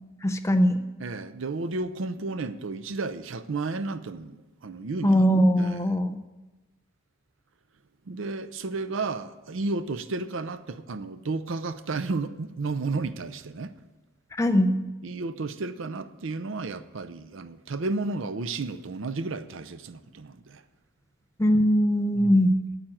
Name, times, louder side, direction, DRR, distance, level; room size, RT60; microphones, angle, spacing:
voice 1, 0.2-0.8 5.0-6.2 14.3-14.8 21.4-22.6, equal, 15° left, 0.5 m, -21 dB
voice 2, 1.0-5.2 5.6-5.8 8.1-13.7 15.0-20.6 22.2-22.3, right 3 dB, 60° right, 0.5 m, -32 dB
8.9 x 8.6 x 7.7 m
head